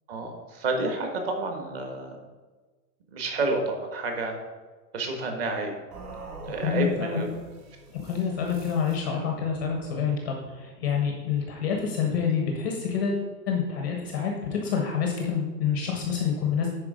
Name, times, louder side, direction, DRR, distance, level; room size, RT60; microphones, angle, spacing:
voice 1, 0.1-2.2 3.1-4.3 4.9-5.7 6.5-7.3, right 3 dB, 35° right, 3 dB, 1.5 m, -29 dB
sound 1, 5.9-10.0, right 2 dB, 65° right, 2.7 m, -44 dB
voice 2, 6.6-7.2 7.9-16.7, left 7 dB, 15° left, 1 dB, 0.4 m, -27 dB
10.0 x 4.5 x 5.0 m, 1.3 s
hypercardioid pair, 160°, 49 cm